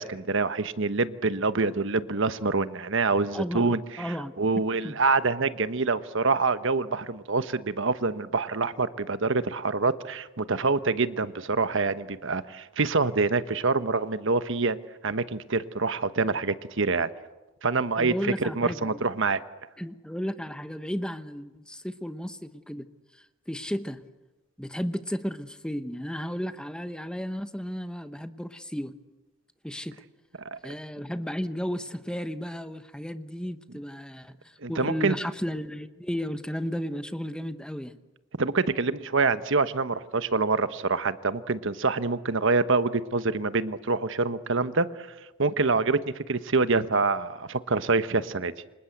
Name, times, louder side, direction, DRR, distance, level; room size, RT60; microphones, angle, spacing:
voice 1, 0.0-14.8 15.0-17.1 17.6-19.4 30.5-30.7 34.6-35.1 38.4-45.1 45.4-46.0 46.3-48.5, right 3 dB, 65° right, 12 dB, 1.1 m, -26 dB
voice 2, 3.3-4.3 4.8-4.9 18.0-19.0 19.8-22.9 23.5-24.0 24.6-28.9 29.6-30.0 30.6-38.0, equal, 5° left, 10 dB, 1.0 m, -34 dB
28.5 x 26.0 x 8.0 m, 1.1 s
head